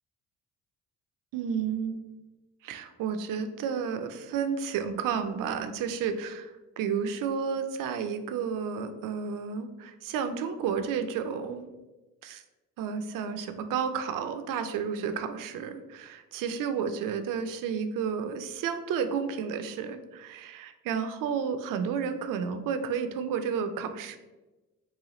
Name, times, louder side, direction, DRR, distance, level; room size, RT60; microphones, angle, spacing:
voice 1, 1.3-2.0 2.6-11.7 12.2-12.4 12.8-24.2, right 6 dB, 55° right, 9 dB, 0.5 m, -31 dB
3.1 x 2.4 x 3.7 m, 1.1 s
hypercardioid pair, 40°, 41 cm